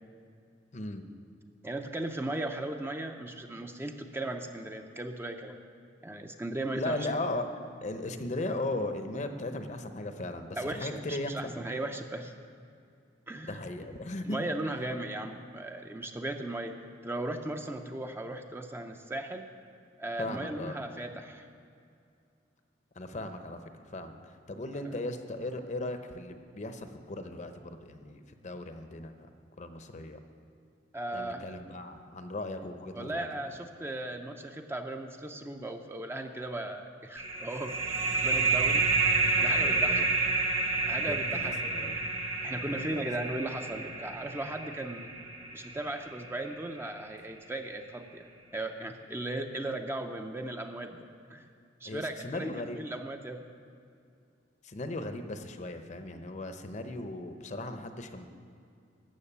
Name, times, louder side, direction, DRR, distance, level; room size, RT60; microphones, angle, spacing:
voice 1, 0.7-1.0 6.7-7.5 7.8-11.6 13.5-14.4 20.2-20.8 23.0-23.6 23.9-29.1 29.6-30.2 31.1-33.2 39.6-40.1 41.0-42.0 42.7-43.0 51.8-52.8 54.6-58.3, left 2 dB, 40° left, 8 dB, 0.8 m, -37 dB
voice 2, 1.6-5.6 6.0-7.2 10.5-12.3 13.3-13.6 14.2-16.7 17.0-19.4 20.0-21.5 24.8-24.9 30.9-31.4 32.9-37.8 38.1-39.0 39.4-40.1 40.9-42.0 42.4-45.1 45.5-48.3 48.5-51.5 51.8-53.4, right 1 dB, 15° right, 5 dB, 0.6 m, -37 dB
sound 1, 37.2-46.5, right 3 dB, 35° right, 1.0 m, -29 dB
14.0 x 6.3 x 8.6 m, 2.4 s
head